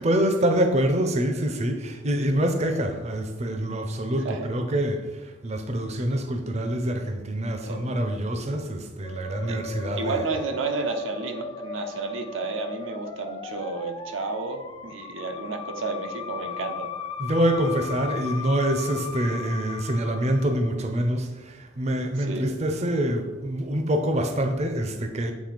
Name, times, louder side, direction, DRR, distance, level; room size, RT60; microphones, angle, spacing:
voice 1, 0.0-10.2 17.2-25.3, right 1 dB, 35° right, 0.6 m, -26 dB
Musical instrument, 9.0-20.8, left 4 dB, 25° left, 0.5 m, -37 dB
voice 2, 10.0-16.9 22.2-22.5, right 3 dB, 85° right, 0.7 m, -31 dB
7.4 x 3.2 x 5.0 m
head